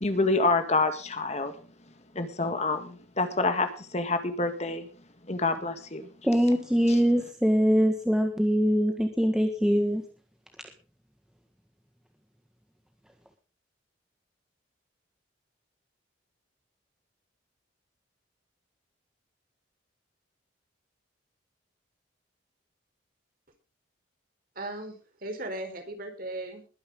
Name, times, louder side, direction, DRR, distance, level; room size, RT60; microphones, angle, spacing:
voice 1, 0.0-1.5 2.1-4.9 5.3-6.1, left 3 dB, 35° left, 8 dB, 1.9 m, -27 dB
voice 2, 6.2-10.0, equal, 5° right, 4 dB, 1.6 m, -23 dB
voice 3, 24.6-26.7, right 1 dB, 45° right, 5 dB, 4.4 m, -37 dB
21.0 x 10.5 x 3.7 m, 0.35 s
head